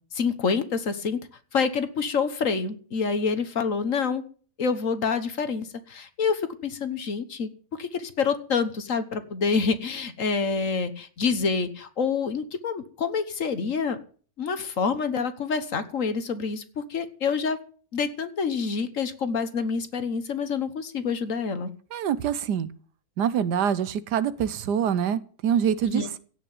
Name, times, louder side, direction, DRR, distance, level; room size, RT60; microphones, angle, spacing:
voice 1, 0.1-1.3 1.5-4.2 4.6-7.5 7.8-14.0 14.4-17.6 17.9-21.7 25.9-26.1, left 5 dB, 55° left, 11 dB, 1.5 m, -27 dB
voice 2, 21.9-22.7 23.2-26.2, right 8 dB, 80° right, 16 dB, 1.4 m, -25 dB
16.5 x 5.9 x 8.7 m, 0.43 s
omnidirectional pair, 1.8 m